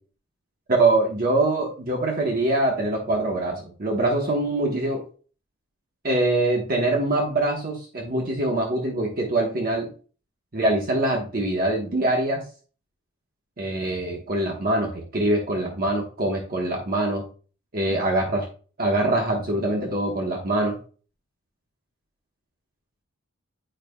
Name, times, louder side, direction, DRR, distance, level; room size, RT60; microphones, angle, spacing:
voice 1, 0.8-5.0 6.0-9.9 10.5-12.4 13.6-17.2 17.7-18.5 18.8-20.8, right 2 dB, 45° right, 0 dB, 1.0 m, -24 dB
8.9 x 5.0 x 2.2 m, 0.38 s
head